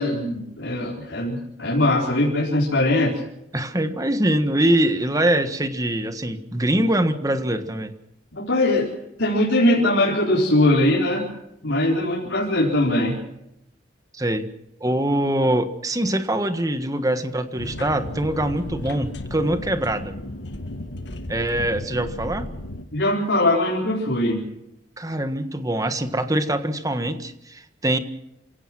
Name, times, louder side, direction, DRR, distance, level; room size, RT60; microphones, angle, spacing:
voice 1, 0.0-3.2 8.3-8.9 9.2-11.3 11.6-13.2 22.9-24.4, left 1 dB, 90° left, -5 dB, 4.5 m, -21 dB
voice 2, 3.5-7.9 14.1-14.5 14.8-20.1 21.3-22.5 25.0-28.0, right 1 dB, 20° right, 9 dB, 1.5 m, -23 dB
sound 1, 17.6-22.8, left 1 dB, 70° left, 1.9 m, -34 dB
27.5 x 17.5 x 6.2 m, 0.83 s
head